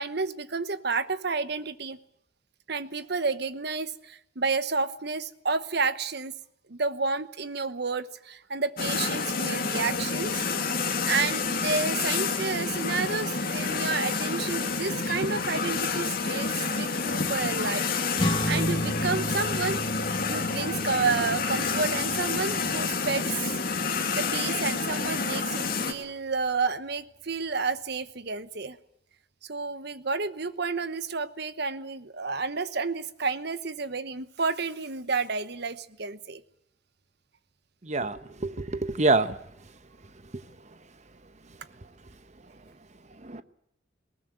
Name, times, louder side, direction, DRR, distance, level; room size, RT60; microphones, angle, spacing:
voice 1, 0.0-2.0 2.7-6.4 6.7-10.3 10.6-10.8 11.1-17.9 18.1-19.8 20.3-23.2 24.2-28.8 29.4-36.4, right 4 dB, 55° right, 1.1 m, -30 dB
sound 1, 8.8-25.9, left 4 dB, 50° left, 2.3 m, -29 dB
sound 2, 18.1-24.8, equal, 25° left, 1.8 m, -33 dB
voice 2, 37.8-39.4 43.2-43.4, right 3 dB, 35° right, 1.0 m, -26 dB
20.5 x 19.0 x 9.1 m
head